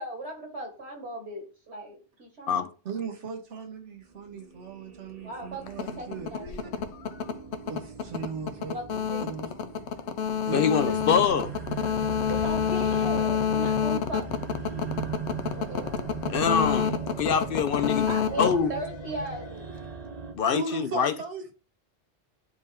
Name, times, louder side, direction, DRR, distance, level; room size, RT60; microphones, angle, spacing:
voice 1, 0.0-2.7 5.2-6.8 8.7-9.4 12.1-14.5 15.5-16.0 18.1-19.8, right 1 dB, 70° right, 2.0 m, -38 dB
voice 2, 2.8-6.6 7.7-8.8 9.2-9.5 10.4-11.0 20.5-21.5, right 4 dB, 90° right, 1.4 m, -37 dB
sound 1, 4.1-20.3, right 6 dB, 40° right, 0.7 m, -39 dB
sound 2, 5.7-19.5, left 8 dB, 75° left, 1.0 m, -29 dB
voice 3, 10.5-11.5 16.3-18.7 20.3-21.1, left 7 dB, 60° left, 0.7 m, -25 dB
9.7 x 3.3 x 3.5 m
omnidirectional pair, 1.2 m